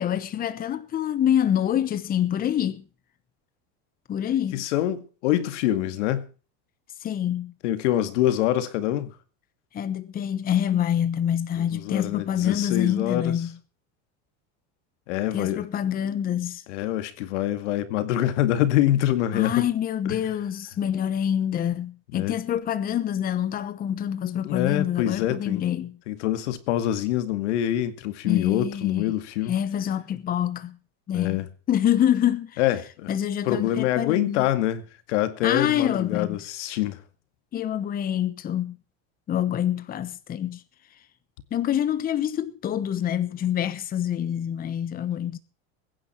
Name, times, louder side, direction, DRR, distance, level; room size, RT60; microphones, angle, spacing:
voice 1, 0.0-2.8 4.1-4.6 7.0-7.5 9.7-13.5 15.3-16.6 19.3-26.0 28.2-29.0 29.5-30.8 31.1-31.4 31.7-32.6 33.1-34.4 35.4-36.4 37.5-38.8 39.3-40.6 41.5-45.4, left 10 dB, 25° left, 1.1 m, -26 dB
voice 2, 4.5-6.3 7.6-9.1 11.6-13.4 15.1-15.6 16.7-19.6 20.1-20.2 22.1-22.3 24.4-25.6 26.1-29.5 31.1-31.5 32.6-33.1 33.4-34.8 35.1-37.0, left 12 dB, 85° left, 2.2 m, -25 dB
22.0 x 10.0 x 4.5 m
supercardioid pair, 150°, 35 cm